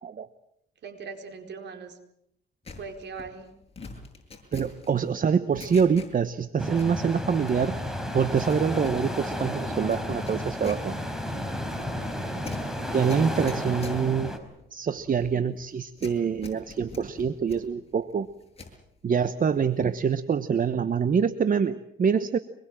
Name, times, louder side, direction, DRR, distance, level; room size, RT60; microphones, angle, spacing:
voice 1, 0.8-2.0 2.8-3.5 11.9-12.5, right 5 dB, 60° right, 4 dB, 4.7 m, -41 dB
sound 1, 2.6-6.4 6.7-7.9 8.2-18.8 19.2-20.0 20.3-20.6, left 3 dB, 30° left, 7.6 m, -45 dB
voice 2, 4.5-7.8 8.1-11.0 12.9-14.3 14.7-18.3 19.0-22.4, right 6 dB, 45° right, 12 dB, 1.1 m, -25 dB
sound 2, 6.6-14.4, left 1 dB, ahead, 4.6 m, -32 dB
25.5 x 22.0 x 7.6 m, 0.76 s
cardioid pair, 90°, 20 cm